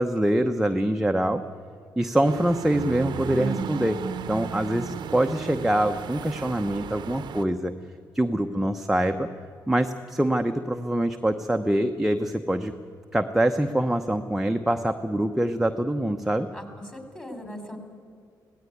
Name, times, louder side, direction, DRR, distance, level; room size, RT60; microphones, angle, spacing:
voice 1, 0.0-1.4 2.0-4.0 4.3-7.7 8.1-9.3 9.7-12.7 13.1-16.5, right 1 dB, 5° right, 5 dB, 0.9 m, -24 dB
sound 1, 2.3-7.4, right 7 dB, 75° right, 0.8 m, -34 dB
voice 2, 16.5-17.8, left 1 dB, 15° left, 6 dB, 4.0 m, -39 dB
17.5 x 17.0 x 9.5 m, 2.2 s
cardioid pair, 85°, 8 cm